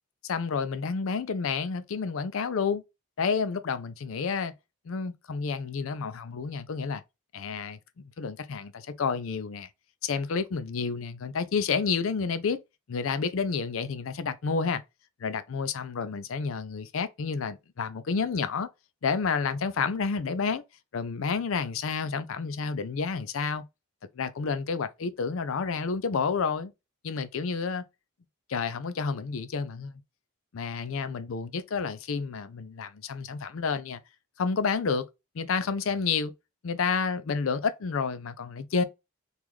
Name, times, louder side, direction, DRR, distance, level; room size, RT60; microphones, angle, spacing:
voice 1, 0.2-2.8 3.2-4.5 4.9-7.0 7.3-7.8 8.2-9.7 10.0-12.6 12.9-14.8 15.2-18.7 19.0-20.6 20.9-23.6 24.2-26.7 27.0-27.9 28.5-30.0 30.5-34.0 34.4-35.1 35.3-36.3 36.6-38.8, left 5 dB, 70° left, 0.4 m, -30 dB
3.0 x 2.4 x 3.6 m
head